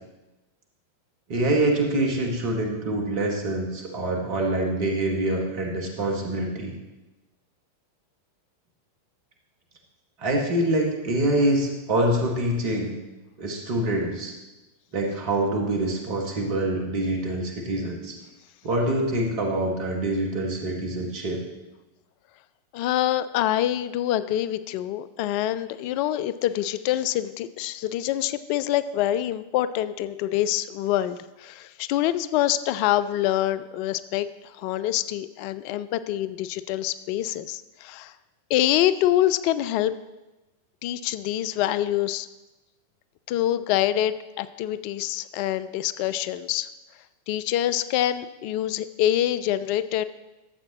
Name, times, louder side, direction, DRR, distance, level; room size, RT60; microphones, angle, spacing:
voice 1, 1.3-6.8 10.2-12.9 13.4-14.3 14.9-18.2 18.6-21.5, right 1 dB, 45° right, 1 dB, 1.9 m, -25 dB
voice 2, 22.7-38.1 38.5-39.9 40.8-42.3 43.3-46.7 47.3-50.0, left 13 dB, 45° left, 14 dB, 0.3 m, -25 dB
13.0 x 7.5 x 3.1 m, 1.1 s
figure-of-eight pair, 90°, 0 cm